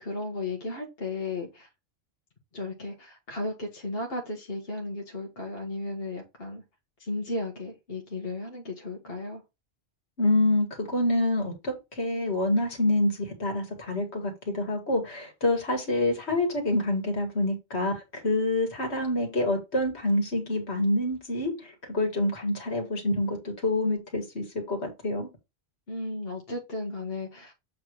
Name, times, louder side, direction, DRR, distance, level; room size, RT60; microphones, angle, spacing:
voice 1, 0.0-1.7 2.5-6.6 7.0-9.4 25.9-27.5, left 2 dB, 65° left, 1.6 m, -35 dB
voice 2, 10.2-25.3, left 1 dB, 85° left, 2.2 m, -27 dB
7.6 x 3.5 x 4.6 m
omnidirectional pair, 1.1 m